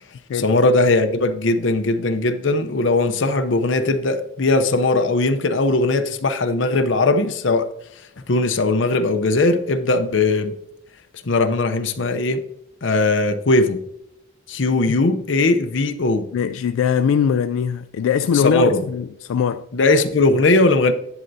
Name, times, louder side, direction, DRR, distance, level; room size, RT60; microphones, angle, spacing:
voice 1, 0.3-7.7 8.3-10.5 11.2-12.4 12.8-13.8 14.5-16.3 18.3-18.8 19.7-20.9, left 2 dB, 65° left, 0.7 m, -19 dB
voice 2, 16.3-19.7, left 7 dB, 85° left, 0.3 m, -21 dB
11.0 x 7.8 x 2.7 m
head